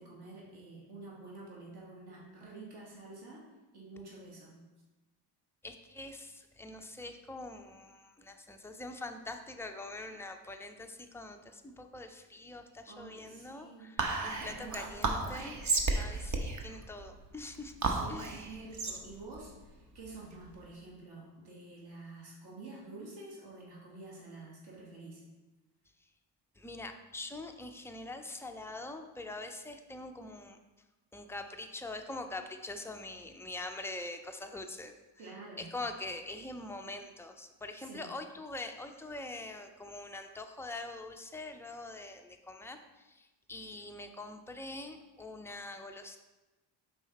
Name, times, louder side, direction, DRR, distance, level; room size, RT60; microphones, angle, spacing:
voice 1, 0.0-3.4 3.7-4.6 12.9-13.9 14.4-15.4 17.8-25.2 35.2-35.7 37.8-38.1, right 3 dB, 55° right, -4 dB, 2.0 m, -49 dB
voice 2, 5.6-15.6 15.9-17.7 18.1-18.5 26.6-30.6 31.1-35.3 35.6-46.2, left 2 dB, 5° left, 5 dB, 0.3 m, -44 dB
Whispering, 14.0-20.6, right 3 dB, 40° right, 0.8 m, -34 dB
5.6 x 4.2 x 4.1 m, 1.1 s
cardioid pair, 85°, 48 cm